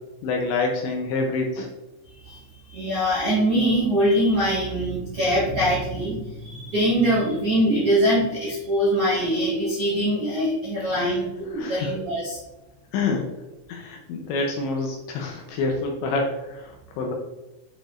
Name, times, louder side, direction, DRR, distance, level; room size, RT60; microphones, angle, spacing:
voice 1, 0.2-1.7 10.9-11.2 11.6-11.9 12.9-13.3 13.7-17.1, left 3 dB, 85° left, 1 dB, 2.7 m, -27 dB
voice 2, 2.7-12.4, equal, 65° right, -9 dB, 1.4 m, -23 dB
9.0 x 5.1 x 2.5 m, 1.0 s
omnidirectional pair, 5.8 m